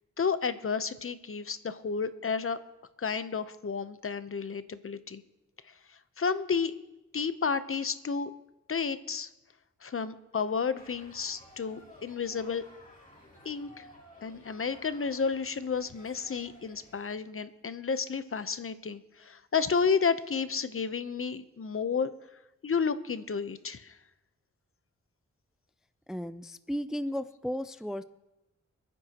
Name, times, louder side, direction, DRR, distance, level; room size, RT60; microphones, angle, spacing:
voice 1, 0.2-2.6 3.0-5.2 6.2-6.7 7.1-8.3 8.7-9.3 9.8-12.6 13.4-13.9 14.2-22.1 22.6-24.0, left 5 dB, 45° left, 12 dB, 0.8 m, -31 dB
sound 1, 10.7-17.1, left 1 dB, 25° left, 3.0 m, -55 dB
voice 2, 26.1-28.0, equal, ahead, 12 dB, 0.4 m, -34 dB
29.5 x 10.0 x 3.0 m, 0.97 s
wide cardioid pair, 80°, 29 cm